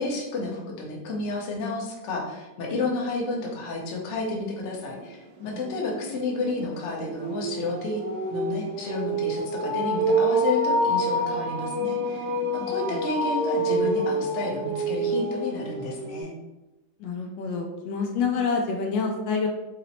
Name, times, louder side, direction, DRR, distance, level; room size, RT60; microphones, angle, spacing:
voice 1, 0.0-8.0 8.3-16.3, left 3 dB, 60° left, -2 dB, 0.8 m, -31 dB
sound 1, 5.0-5.1 5.4-16.2, right 1 dB, 65° right, 1.1 m, -27 dB
voice 2, 12.6-13.0 17.0-19.5, left 5 dB, 75° left, 3 dB, 1.2 m, -28 dB
4.2 x 2.0 x 4.0 m, 1.0 s
omnidirectional pair, 2.1 m